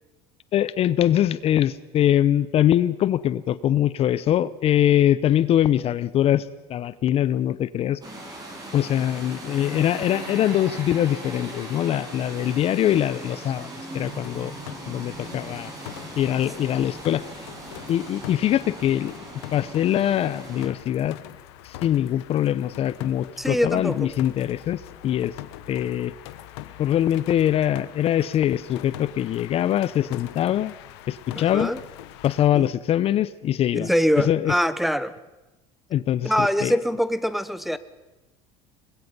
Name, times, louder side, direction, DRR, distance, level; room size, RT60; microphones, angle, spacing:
voice 1, 0.5-8.0 8.7-14.5 14.9-15.7 16.2-17.2 17.9-21.2 21.6-25.3 25.7-26.1 26.8-30.7 31.1-31.7 32.2-33.9 34.2-34.5 35.9-36.7, left 11 dB, 45° left, 0.7 m, -23 dB
sound 1, 8.0-20.7, right 1 dB, 25° right, 7.1 m, -39 dB
sound 2, 14.0-32.5, left 15 dB, 80° left, 1.2 m, -43 dB
voice 2, 23.4-24.1 31.3-31.8 32.6-32.7 33.7-35.2 36.2-37.8, equal, ahead, 0.9 m, -24 dB
22.5 x 21.0 x 5.5 m
supercardioid pair, 100°, 14 cm